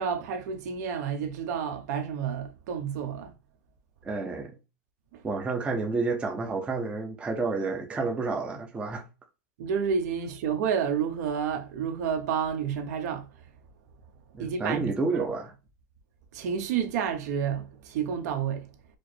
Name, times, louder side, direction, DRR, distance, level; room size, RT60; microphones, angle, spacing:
voice 1, 0.0-3.3 5.1-5.2 9.6-13.3 14.4-15.2 16.3-18.7, right 7 dB, 65° right, 1.0 m, -30 dB
voice 2, 4.0-4.5 5.2-9.1 14.3-15.5, right 3 dB, 10° right, 0.6 m, -30 dB
4.8 x 2.0 x 4.2 m
supercardioid pair, 160°, 10 cm